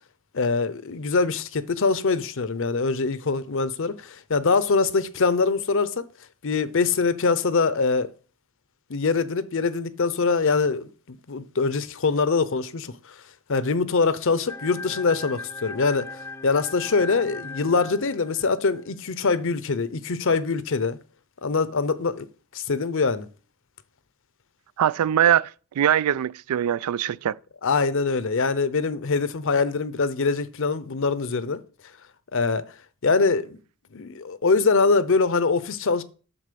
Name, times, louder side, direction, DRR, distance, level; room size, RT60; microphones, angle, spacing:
voice 1, 0.3-6.1 6.4-8.1 8.9-13.0 13.5-21.0 21.4-22.3 22.5-23.3 27.6-31.6 32.3-32.6 33.0-33.6 33.9-36.0, left 4 dB, 60° left, 0.7 m, -23 dB
sound 1, 14.5-18.9, left 3 dB, 10° left, 0.4 m, -38 dB
voice 2, 24.8-25.5 25.8-27.4, right 10 dB, 85° right, 0.3 m, -22 dB
9.9 x 4.1 x 6.8 m
head